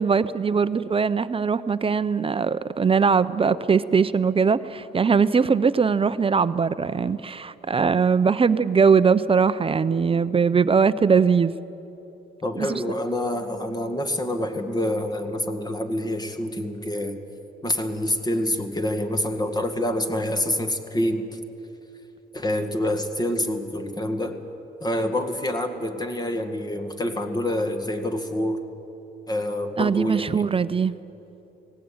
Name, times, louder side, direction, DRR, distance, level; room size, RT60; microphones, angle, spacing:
voice 1, 0.0-11.5 12.6-12.8 29.8-31.0, right 5 dB, 30° right, 14 dB, 0.6 m, -21 dB
voice 2, 12.4-17.2 17.6-21.4 22.3-24.4 24.8-28.6 29.3-30.5, left 1 dB, 20° left, 7 dB, 1.9 m, -27 dB
19.0 x 17.0 x 8.8 m, 3.0 s
cardioid pair, 90°, 20 cm